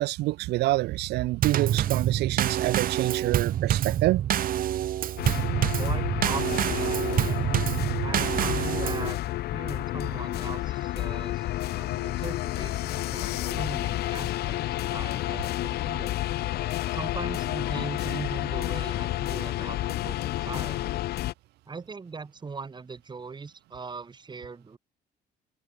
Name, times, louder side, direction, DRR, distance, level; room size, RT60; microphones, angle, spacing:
voice 1, 0.0-4.2, right 18 dB, 80° right, 1.3 m, -27 dB
Drum kit / Snare drum / Bass drum, 1.4-9.1, right 11 dB, 55° right, 1.6 m, -26 dB
sound 1, 5.2-21.3, left 15 dB, 70° left, 1.0 m, -30 dB
voice 2, 5.8-7.5 8.0-9.2 9.5-16.1 16.9-20.9 21.7-24.8, right 4 dB, 25° right, 4.7 m, -40 dB
cardioid pair, 110°, 17 cm